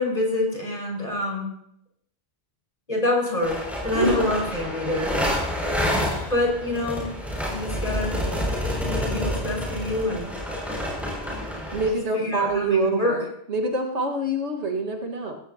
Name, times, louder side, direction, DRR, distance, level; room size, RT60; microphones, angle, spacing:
voice 1, 0.0-1.5 2.9-5.1 6.3-7.0 7.5-8.2 8.8-10.3 12.1-13.2, left 2 dB, 35° left, -3 dB, 5.8 m, -26 dB
sound 1, 3.4-11.9, equal, ahead, 6.3 m, -28 dB
voice 2, 3.9-4.3 11.7-13.2 13.5-15.3, right 2 dB, 85° right, 1 dB, 2.1 m, -25 dB
18.0 x 16.0 x 2.9 m, 0.72 s
omnidirectional pair, 1.1 m